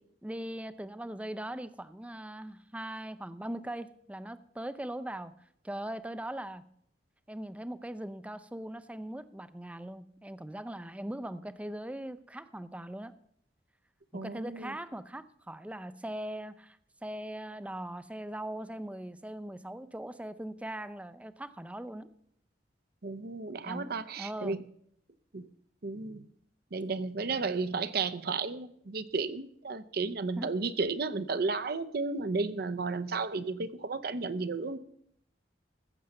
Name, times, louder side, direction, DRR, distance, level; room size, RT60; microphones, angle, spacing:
voice 1, 0.2-5.3 5.6-6.6 7.3-13.1 14.1-22.1 23.6-24.6 30.4-30.5, right 1 dB, 5° right, 14 dB, 0.5 m, -40 dB
voice 2, 14.1-14.7 23.0-24.6 25.3-25.5 25.8-26.2 26.7-34.8, right 4 dB, 60° right, 13 dB, 0.7 m, -33 dB
15.0 x 7.0 x 6.5 m, 0.69 s
head